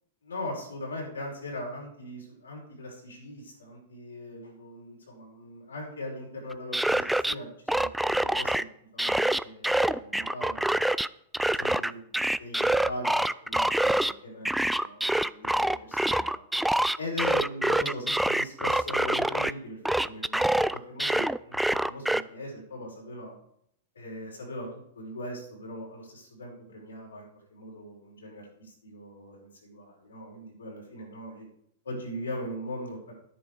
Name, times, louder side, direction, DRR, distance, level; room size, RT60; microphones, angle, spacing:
voice 1, 0.2-8.7 8.9-10.9 11.5-12.1 12.4-16.4 17.0-19.8 20.0-23.3 24.0-24.7 25.0-27.2 27.5-31.5 31.9-33.1, left 1 dB, 80° left, -2 dB, 5.1 m, -40 dB
sound 1, 6.5-7.3 7.7-8.6 9.0-11.1 11.3-14.1 14.5-19.5 19.9-22.2, right 1 dB, 5° right, 0.3 m, -25 dB
10.5 x 10.0 x 4.8 m, 0.71 s
figure-of-eight pair, 100°, 0 cm